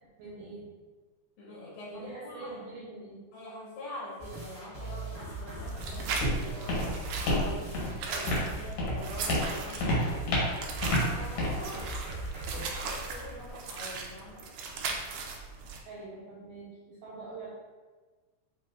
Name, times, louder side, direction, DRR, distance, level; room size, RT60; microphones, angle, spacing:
voice 1, 0.2-0.7 1.9-3.2 8.1-8.4 11.7-11.8 15.8-17.5, right 3 dB, 70° right, -6 dB, 2.1 m, -44 dB
voice 2, 1.4-2.7 3.3-8.2 8.6-10.3 10.8-11.9 12.5-14.5, left 1 dB, 80° left, -6 dB, 3.3 m, -44 dB
sound 1, 4.2-12.7, right 2 dB, 50° right, 1.0 m, -40 dB
Walk footsteps, 5.5-13.5, left 1 dB, 65° left, 1.8 m, -32 dB
sound 2, 5.7-15.8, right 4 dB, 90° right, 1.7 m, -38 dB
7.0 x 2.6 x 2.4 m, 1.3 s
omnidirectional pair, 4.2 m